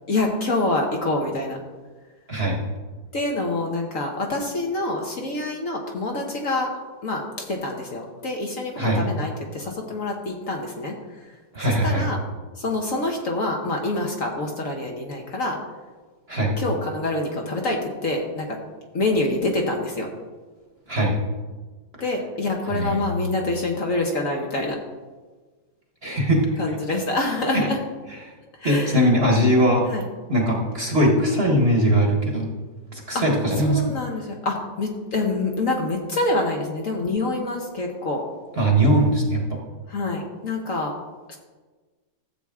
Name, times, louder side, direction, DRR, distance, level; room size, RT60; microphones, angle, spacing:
voice 1, 0.1-1.6 3.1-10.9 11.6-12.2 12.6-15.6 16.6-18.6 18.9-20.1 22.0-24.8 26.6-27.8 28.6-29.1 29.9-30.0 33.1-33.2 33.6-38.2 39.9-40.9 41.3-41.4, left 2 dB, 50° left, 1 dB, 1.3 m, -26 dB
voice 2, 2.3-2.6 8.8-9.0 11.5-12.1 16.3-16.6 20.9-21.1 22.7-23.0 26.0-26.5 27.5-27.7 28.2-28.3 28.6-29.9 30.3-32.5 32.9-33.8 38.6-39.6, equal, 35° right, 0 dB, 1.3 m, -20 dB
14.0 x 7.9 x 3.6 m, 1.3 s
omnidirectional pair, 2.1 m